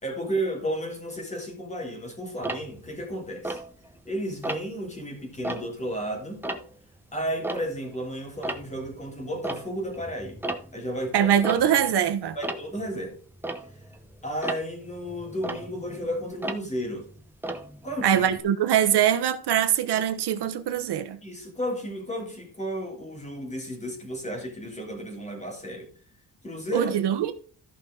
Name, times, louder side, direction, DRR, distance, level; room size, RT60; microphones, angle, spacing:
voice 1, 0.0-3.6 4.0-6.4 7.1-10.4 10.7-11.3 12.3-13.2 14.2-17.1 17.8-18.2 21.2-25.9 26.4-26.9, equal, 15° left, 3.4 m, -33 dB
Tick-tock, 2.4-4.1 4.4-4.9 5.3-8.0 8.3-18.4, right 1 dB, 5° right, 0.9 m, -36 dB
voice 2, 11.1-12.4 18.0-21.2 26.7-27.3, right 10 dB, 90° right, 1.2 m, -23 dB
14.0 x 5.8 x 3.9 m
wide cardioid pair, 160°, 39 cm